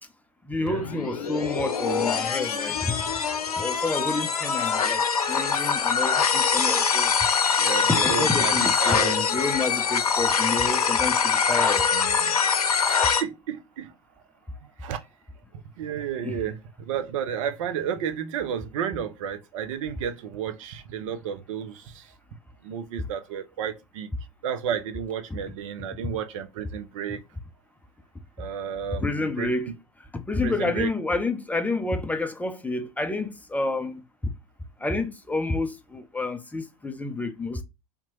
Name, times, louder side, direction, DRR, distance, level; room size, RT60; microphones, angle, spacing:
voice 1, 0.5-3.0 3.6-5.0 5.3-7.1 7.9-11.9 16.2-16.4 29.0-29.7 30.3-34.0 34.8-37.6, left 3 dB, 10° left, 0.5 m, -29 dB
sound 1, 0.7-13.2, left 6 dB, 80° left, 0.6 m, -24 dB
voice 2, 4.6-5.0 7.5-9.2 11.9-12.3 12.8-13.9 14.8-15.0 15.8-16.6 16.9-22.1 22.6-24.1 24.4-27.2 28.4-29.5 30.4-30.9, right 8 dB, 60° right, 0.6 m, -32 dB
3.6 x 2.9 x 2.9 m
figure-of-eight pair, 85°, 19 cm